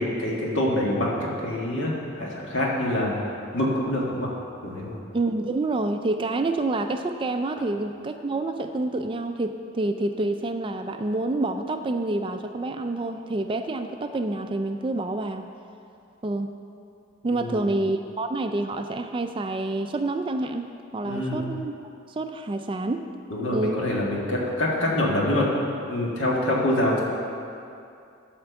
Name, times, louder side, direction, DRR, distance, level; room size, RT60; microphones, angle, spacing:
voice 1, 0.0-3.1 3.5-4.3 4.6-4.9 17.3-17.6 21.0-21.4 23.3-25.5 25.9-27.0, left 1 dB, 70° left, -3 dB, 1.8 m, -25 dB
voice 2, 5.1-15.5 16.2-16.5 17.2-21.7 22.1-23.1 23.5-23.8, right 2 dB, 25° right, 7 dB, 0.3 m, -28 dB
12.0 x 4.5 x 7.0 m, 2.6 s
head